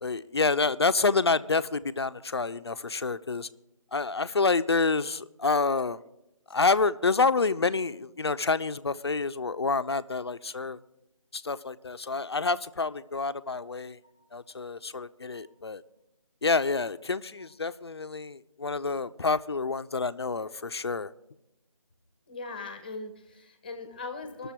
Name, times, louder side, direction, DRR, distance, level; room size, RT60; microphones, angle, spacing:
voice 1, 0.0-3.5 3.9-6.0 6.5-10.8 11.3-14.0 14.3-15.8 16.4-21.1, left 4 dB, 50° left, 0.4 m, -28 dB
voice 2, 22.3-24.5, left 3 dB, 15° left, 0.8 m, -40 dB
20.0 x 6.7 x 4.5 m
figure-of-eight pair, 165°, 18 cm